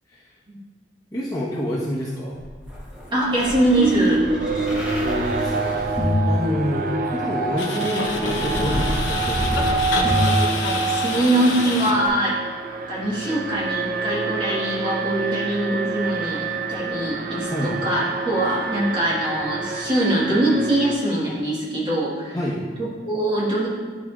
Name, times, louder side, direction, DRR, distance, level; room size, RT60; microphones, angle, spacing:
voice 1, 1.1-2.4 5.0-9.8 17.5-17.8 22.3-22.6, equal, 20° left, -8 dB, 1.1 m, -28 dB
sound 1, 2.4-7.2 8.0-11.3 12.0-12.1, left 1 dB, 5° right, 1.1 m, -27 dB
Alarm, 3.0-21.0, right 3 dB, 45° right, 0.4 m, -27 dB
voice 2, 3.1-4.2 10.8-12.3 12.9-22.4 22.8-23.7, right 1 dB, 25° right, -6 dB, 1.5 m, -23 dB
sound 2, 7.6-12.1 16.7-16.8, left 3 dB, 80° left, 0.8 m, -27 dB
11.5 x 4.6 x 2.4 m, 1.5 s
head